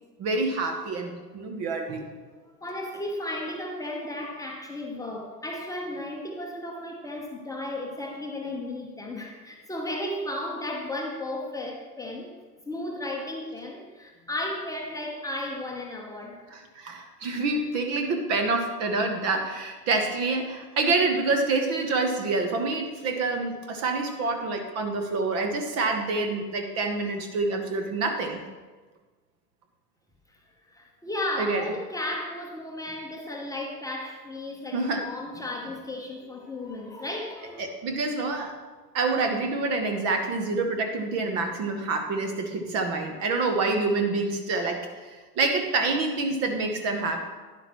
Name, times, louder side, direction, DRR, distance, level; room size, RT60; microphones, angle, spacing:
voice 1, 0.2-2.1 16.5-28.4 31.4-31.7 34.7-35.1 37.6-38.5 38.9-47.3, right 3 dB, 30° right, 5 dB, 1.1 m, -27 dB
voice 2, 2.5-12.3 12.6-16.4 30.7-37.7, left 1 dB, 5° left, 0 dB, 1.0 m, -34 dB
11.5 x 10.5 x 3.1 m, 1.4 s
figure-of-eight pair, 95°, 49 cm